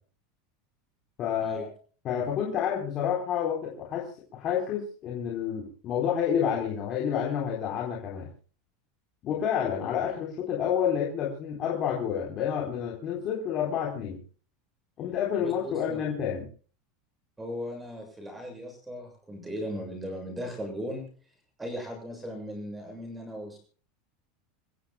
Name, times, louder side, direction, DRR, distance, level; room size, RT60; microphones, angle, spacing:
voice 1, 1.2-1.7 2.0-8.3 9.2-14.2 15.0-16.4, left 8 dB, 30° left, -1 dB, 4.0 m, -29 dB
voice 2, 15.4-16.0 17.4-21.1 21.6-23.6, equal, 10° right, 4 dB, 7.2 m, -37 dB
28.5 x 15.0 x 2.3 m, 0.40 s
supercardioid pair, 160°, 0 cm